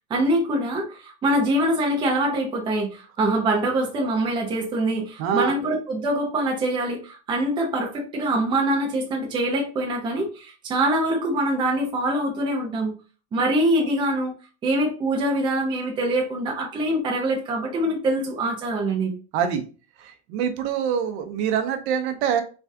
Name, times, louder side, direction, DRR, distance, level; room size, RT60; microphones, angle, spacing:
voice 1, 0.1-12.9 13.3-14.3 14.6-19.1, right 1 dB, 15° right, 0 dB, 0.5 m, -24 dB
voice 2, 5.2-5.5 19.3-19.6 20.0-22.4, right 8 dB, 70° right, 7 dB, 0.7 m, -25 dB
3.3 x 2.3 x 2.6 m, 0.35 s
cardioid pair, 165°, 35 cm